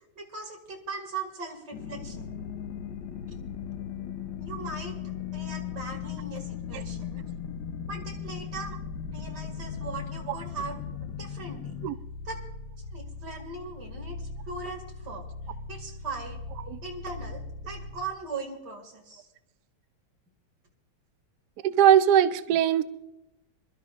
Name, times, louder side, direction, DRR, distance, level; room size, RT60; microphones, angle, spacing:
voice 1, 0.2-2.3 3.3-3.5 4.4-7.2 7.9-8.7 9.1-11.7 12.2-12.4 12.8-14.2 14.5-15.2 15.7-16.4 16.8-19.3, right 4 dB, 50° right, 2 dB, 2.6 m, -39 dB
sound 1, 1.7-11.9, left 11 dB, 70° left, 1.4 m, -38 dB
sound 2, 2.0-18.1, left 2 dB, 45° left, 1.2 m, -42 dB
voice 2, 21.6-22.8, right 10 dB, 80° right, 11 dB, 0.9 m, -20 dB
26.0 x 12.5 x 2.4 m, 0.97 s
omnidirectional pair, 2.3 m